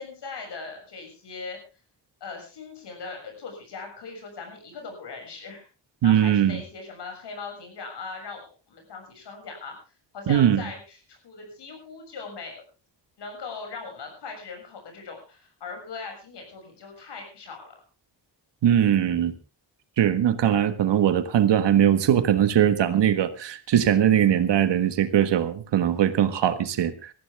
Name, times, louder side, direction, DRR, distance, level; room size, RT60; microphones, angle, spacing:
voice 1, 0.0-1.6 2.2-5.6 6.0-9.8 10.1-12.6 13.2-17.7, left 4 dB, 70° left, 3 dB, 7.1 m, -39 dB
voice 2, 6.0-6.6 10.3-10.6 18.6-19.3 20.0-27.1, right 10 dB, 75° right, 10 dB, 1.6 m, -21 dB
19.5 x 14.0 x 3.6 m, 0.33 s
wide cardioid pair, 165°, 43 cm